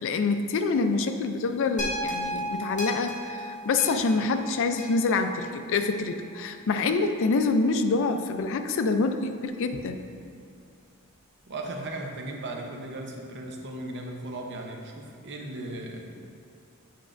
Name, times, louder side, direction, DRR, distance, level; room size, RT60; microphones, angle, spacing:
voice 1, 0.0-10.0, left 3 dB, 60° left, 7 dB, 0.4 m, -26 dB
sound 1, 1.8-6.1 6.8-6.9, equal, 35° left, 1.3 m, -35 dB
voice 2, 11.5-16.2, right 2 dB, 55° right, 1 dB, 0.7 m, -37 dB
9.1 x 5.1 x 2.5 m, 2.4 s
head